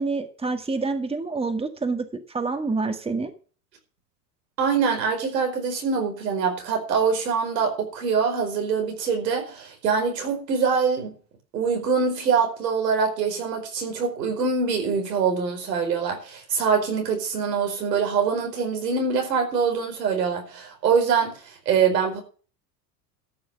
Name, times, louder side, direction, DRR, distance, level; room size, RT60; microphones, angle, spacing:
voice 1, 0.0-3.3, right 3 dB, 10° right, 1.9 m, -27 dB
voice 2, 4.6-11.2 11.5-22.2, right 5 dB, 90° right, 4.8 m, -24 dB
13.5 x 6.2 x 7.1 m
hypercardioid pair, 95°, 48 cm